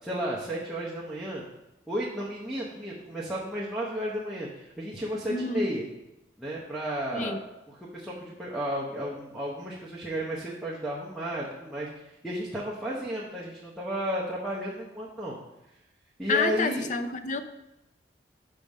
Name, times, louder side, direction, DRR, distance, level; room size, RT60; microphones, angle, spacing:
voice 1, 0.0-1.4 1.9-5.8 6.4-7.4 7.7-11.9 12.2-15.4 16.2-16.9, equal, ahead, -7 dB, 0.9 m, -33 dB
voice 2, 5.3-5.7 7.1-7.4 16.3-17.4, left 3 dB, 40° left, 9 dB, 0.4 m, -28 dB
6.1 x 5.2 x 5.3 m, 0.92 s
head